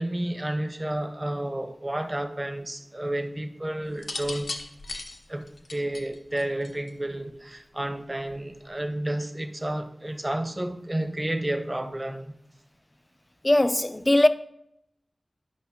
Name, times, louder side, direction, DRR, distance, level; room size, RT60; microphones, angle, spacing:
voice 1, 0.0-4.5 5.3-5.4 5.7-12.3, right 1 dB, 25° right, 0.9 m, -31 dB
sound 1, 3.9-7.1 8.2-8.6, left 2 dB, 80° left, 0.9 m, -37 dB
voice 2, 13.4-14.3, left 1 dB, 25° left, 0.5 m, -20 dB
12.5 x 5.4 x 2.9 m
wide cardioid pair, 70°, 0 cm